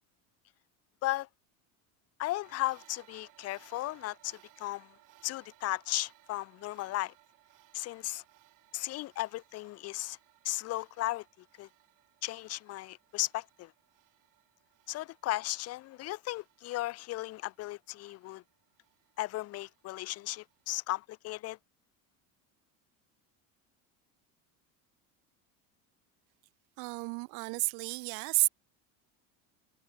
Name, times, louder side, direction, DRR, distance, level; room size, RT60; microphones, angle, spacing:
voice 1, 2.2-4.9 5.2-7.1 7.7-8.2 8.7-10.2 10.4-11.2 11.6-11.7 12.2-13.7 14.9-18.4 19.2-21.6, left 17 dB, 40° left, 0.6 m, -36 dB
sound 1, 2.4-20.6, right 16 dB, 50° right, 5.9 m, -64 dB
voice 2, 26.8-28.5, right 39 dB, 65° right, 0.7 m, -31 dB
cardioid pair, 150°, 40 cm